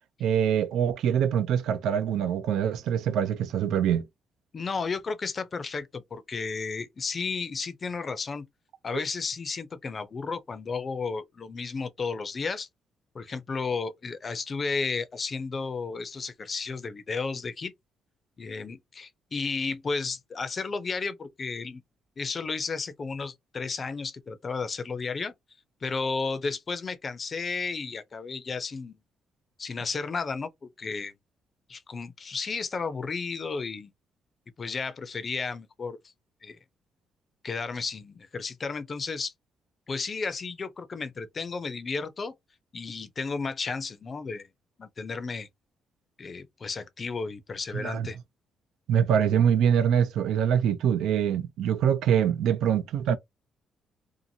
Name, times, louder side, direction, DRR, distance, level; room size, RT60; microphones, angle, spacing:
voice 1, 0.2-4.0 47.7-48.1 48.9-53.2, right 8 dB, 80° right, 0.4 m, -24 dB
voice 2, 4.5-8.5 8.8-12.7 13.1-17.7 18.4-21.8 22.2-25.3 25.8-28.9 29.6-31.1 31.7-33.9 34.6-36.0 36.4-36.6 37.4-39.3 39.9-42.3 42.7-44.5 44.8-45.5 46.2-48.2, left 4 dB, 40° left, 0.5 m, -33 dB
2.7 x 2.5 x 2.7 m
cardioid pair, 90°, 0 cm